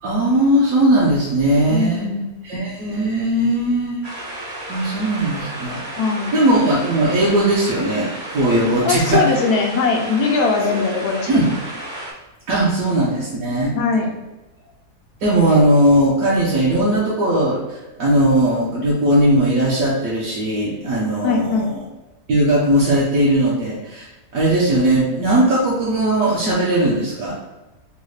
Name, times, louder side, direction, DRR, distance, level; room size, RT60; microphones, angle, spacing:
voice 1, 0.0-2.1 2.4-4.0 4.7-5.8 6.3-9.2 10.7-10.8 11.3-11.5 12.5-13.7 15.2-17.6 18.0-21.8 22.3-24.1 24.3-27.3, right 1 dB, 65° right, -6 dB, 1.1 m, -18 dB
voice 2, 1.7-2.3 6.0-6.4 8.8-11.5 13.7-14.2 21.2-21.7, left 4 dB, 75° left, 2 dB, 1.1 m, -20 dB
sound 1, 4.0-12.1, right 1 dB, 35° right, 0.6 m, -32 dB
3.9 x 2.1 x 3.1 m, 1.0 s
omnidirectional pair, 1.7 m